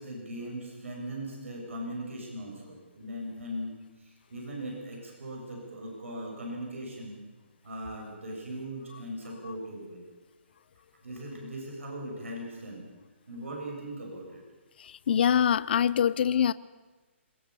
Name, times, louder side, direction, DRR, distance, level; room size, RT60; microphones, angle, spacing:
voice 1, 0.0-7.2 7.6-10.1 11.0-12.9 13.3-14.4, right 1 dB, 80° right, 0 dB, 7.2 m, -39 dB
voice 2, 14.8-16.5, left 8 dB, 50° left, 17 dB, 0.6 m, -24 dB
21.0 x 20.0 x 7.0 m, 1.2 s
hypercardioid pair, 160°, 7 cm